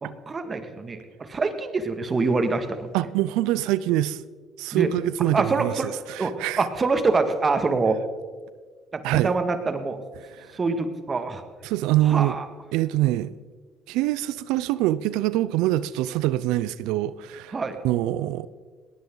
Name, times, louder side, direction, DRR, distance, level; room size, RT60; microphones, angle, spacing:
voice 1, 0.0-2.9 4.7-4.9 5.3-5.9 6.2-8.0 8.9-10.0 10.5-11.4 12.0-12.5 17.5-17.8, right 3 dB, 35° right, 2.1 m, -25 dB
voice 2, 2.9-4.2 4.6-6.7 9.0-9.3 10.4-10.5 11.6-12.4 12.7-13.4 13.9-17.6 17.8-18.5, right 14 dB, 80° right, 0.5 m, -24 dB
19.5 x 18.5 x 4.0 m
supercardioid pair, 65°, 0 cm